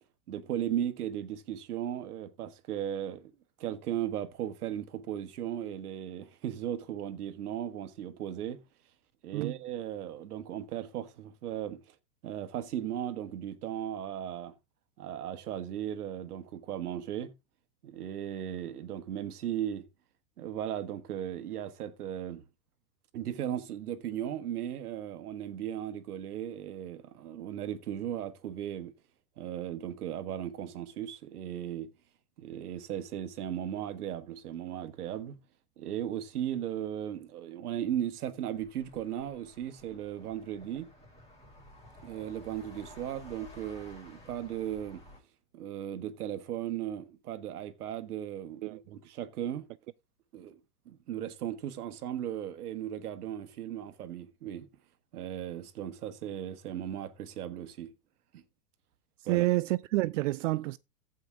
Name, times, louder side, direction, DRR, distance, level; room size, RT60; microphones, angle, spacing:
voice 1, 0.3-3.3 3.6-8.6 9.2-11.8 12.2-14.5 15.0-17.3 17.8-19.9 20.4-22.5 23.1-28.9 29.4-31.9 32.4-35.4 35.8-40.9 42.0-45.0 45.5-49.7 50.3-50.6 50.8-54.7 55.1-57.9 58.3-58.4 59.2-59.5, right 10 dB, 75° right, 1.6 m, -36 dB
sound 1, 38.5-45.2, left 1 dB, 10° left, 7.2 m, -53 dB
voice 2, 59.3-60.8, right 19 dB, 55° right, 0.5 m, -28 dB
15.0 x 5.5 x 3.5 m
hypercardioid pair, 115°, 46 cm